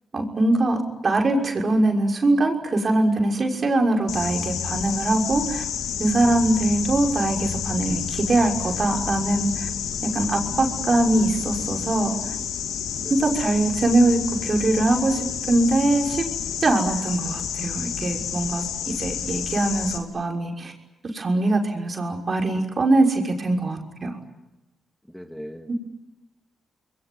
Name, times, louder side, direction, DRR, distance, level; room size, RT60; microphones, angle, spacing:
voice 1, 0.1-5.6 6.0-9.7 10.0-12.4 13.2-16.3 16.6-20.7 21.1-24.2 25.7-25.8, right 2 dB, 45° right, 2 dB, 6.1 m, -22 dB
sound 1, 4.1-20.0, left 8 dB, 80° left, 2.5 m, -30 dB
voice 2, 9.9-10.2 13.0-13.3 25.1-25.7, equal, 5° left, 5 dB, 2.5 m, -39 dB
28.5 x 21.5 x 9.6 m, 0.99 s
supercardioid pair, 45°, 0 cm